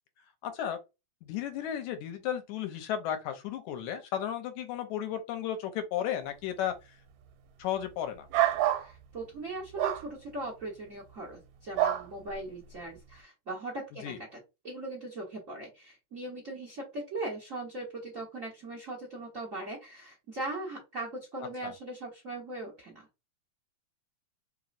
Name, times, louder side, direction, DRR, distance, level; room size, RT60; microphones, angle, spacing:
voice 1, 0.4-0.8 1.3-6.7 7.6-8.3 14.0-14.2 21.6-21.7, left 10 dB, 80° left, 2.1 m, -34 dB
sound 1, 8.3-8.9 9.8-10.0 11.8-12.1, right 13 dB, 90° right, 2.1 m, -26 dB
voice 2, 8.6-14.4 14.6-23.1, right 2 dB, 65° right, 0.7 m, -39 dB
4.7 x 3.0 x 2.5 m
omnidirectional pair, 3.4 m